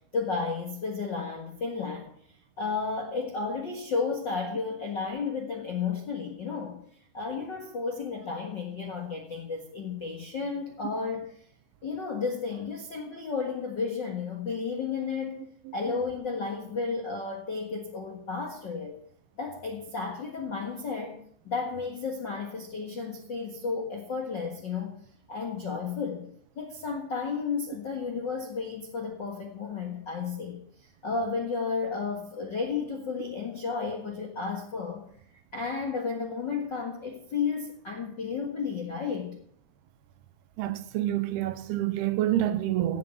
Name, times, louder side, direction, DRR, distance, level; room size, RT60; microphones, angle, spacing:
voice 1, 0.1-2.1 2.6-6.8 7.1-11.3 11.8-15.4 15.7-19.0 19.4-21.2 21.4-25.0 25.3-26.2 26.6-30.6 31.0-35.0 35.5-39.3, left 5 dB, 55° left, 1.2 m, -32 dB
voice 2, 40.6-43.0, right 13 dB, 80° right, 2.6 m, -27 dB
17.0 x 7.7 x 7.0 m
omnidirectional pair, 4.7 m